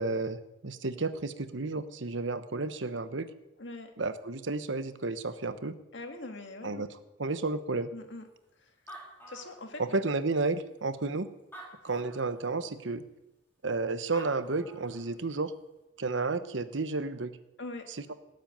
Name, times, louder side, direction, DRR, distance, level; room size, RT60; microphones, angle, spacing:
voice 1, 0.0-3.3 4.0-5.7 6.6-6.9 7.2-7.9 9.8-11.3 11.8-13.0 13.6-15.5 16.0-17.3, right 3 dB, 75° right, 12 dB, 1.0 m, -32 dB
voice 2, 3.6-3.9 5.9-6.9 7.9-8.3 8.6-9.0 9.3-9.8 17.6-17.9, left 2 dB, 70° left, 4 dB, 2.0 m, -42 dB
Animal, 8.4-8.5 8.7-10.1 10.8-10.9 11.4-12.4 13.8-13.9 14.1-15.1, right 1 dB, 10° left, 3.8 m, -48 dB
18.5 x 7.9 x 8.9 m, 0.98 s
head